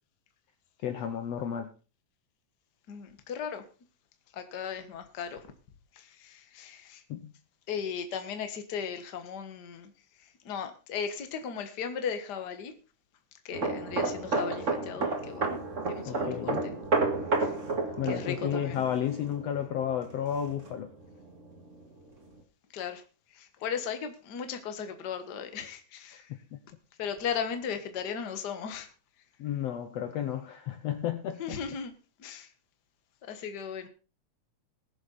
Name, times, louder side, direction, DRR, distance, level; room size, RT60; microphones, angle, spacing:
voice 1, 0.8-1.7 7.1-7.3 16.1-16.8 18.0-20.9 26.1-26.2 26.5-26.6 29.4-31.6, left 9 dB, 70° left, 1.7 m, -32 dB
voice 2, 2.9-3.6 4.3-5.5 6.0-7.0 7.7-9.9 10.4-12.7 13.5-15.5 15.9-16.7 17.4-17.5 18.0-18.8 22.7-23.0 23.3-26.2 27.0-28.9 31.4-31.9 32.2-32.5 33.3-33.9, left 7 dB, 45° left, 1.5 m, -36 dB
sound 1, 13.5-21.0 21.3-21.6, right 3 dB, 30° right, 1.7 m, -31 dB
21.0 x 7.2 x 4.2 m
omnidirectional pair, 3.6 m